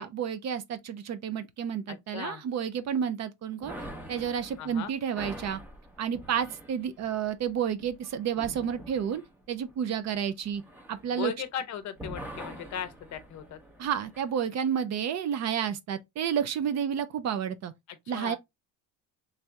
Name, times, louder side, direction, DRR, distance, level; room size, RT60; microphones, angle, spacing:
voice 1, 0.0-3.8 4.1-5.6 6.0-9.2 9.5-10.6 10.9-11.3 13.8-17.7 18.1-18.4, right 8 dB, 45° right, 0.5 m, -30 dB
voice 2, 1.9-2.4 4.6-4.9 11.1-13.6 17.9-18.4, left 9 dB, 45° left, 0.7 m, -37 dB
sound 1, 3.6-11.6 11.9-14.3, equal, 5° right, 0.7 m, -45 dB
3.3 x 2.8 x 3.4 m
cardioid pair, 150°, 38 cm